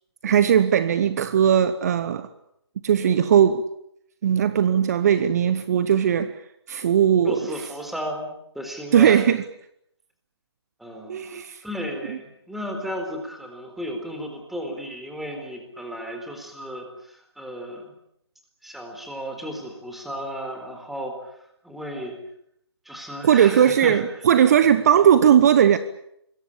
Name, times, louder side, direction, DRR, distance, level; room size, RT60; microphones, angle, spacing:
voice 1, 0.2-2.3 2.8-3.6 4.2-6.4 6.7-7.4 8.9-9.4 11.1-11.6 12.1-12.2 23.2-25.8, right 9 dB, 35° right, 13 dB, 1.1 m, -18 dB
voice 2, 7.2-9.2 10.8-17.8 18.6-22.2 22.8-24.0, equal, ahead, 4 dB, 4.1 m, -34 dB
26.5 x 22.0 x 8.7 m, 0.75 s
figure-of-eight pair, 145°, 14 cm